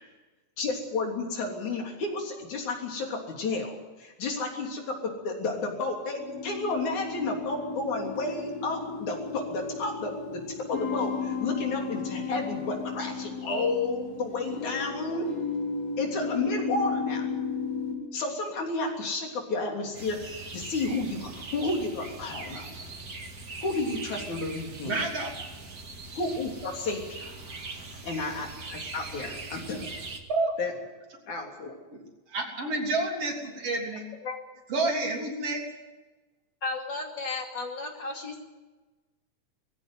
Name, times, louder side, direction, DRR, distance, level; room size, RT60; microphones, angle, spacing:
voice 1, 0.6-15.3 16.0-17.3 18.1-22.8 23.6-25.0 26.1-27.3 28.0-29.9 30.6-30.7 31.3-31.7, left 3 dB, 75° left, 1 dB, 4.7 m, -32 dB
sound 1, 6.1-18.0, left 5 dB, 60° left, 4.5 m, -34 dB
sound 2, 19.9-30.2, right 3 dB, 35° right, 2.2 m, -41 dB
voice 2, 24.8-25.3 30.3-30.5 31.9-32.0 32.3-34.1 34.7-35.6, right 2 dB, 55° right, 0 dB, 4.3 m, -29 dB
voice 3, 36.6-38.4, left 3 dB, 40° left, 2 dB, 3.2 m, -34 dB
20.0 x 15.5 x 9.2 m, 1.2 s
omnidirectional pair, 3.4 m